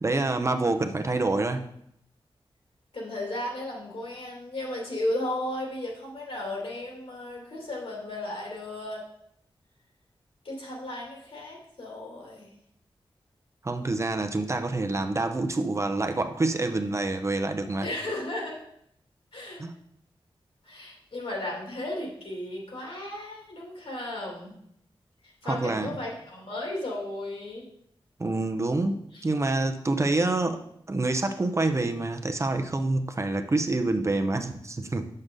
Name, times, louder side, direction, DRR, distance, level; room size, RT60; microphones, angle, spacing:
voice 1, 0.0-1.6 13.6-17.9 19.6-19.7 25.4-25.9 28.2-30.6 30.9-35.1, right 2 dB, 30° right, 6 dB, 0.6 m, -27 dB
voice 2, 2.9-9.0 10.4-12.5 17.8-18.6 19.3-19.6 20.7-24.5 25.4-27.7 29.1-29.2, left 1 dB, 75° left, -2 dB, 2.5 m, -35 dB
7.7 x 6.5 x 3.8 m, 0.72 s
wide cardioid pair, 110°, 9 cm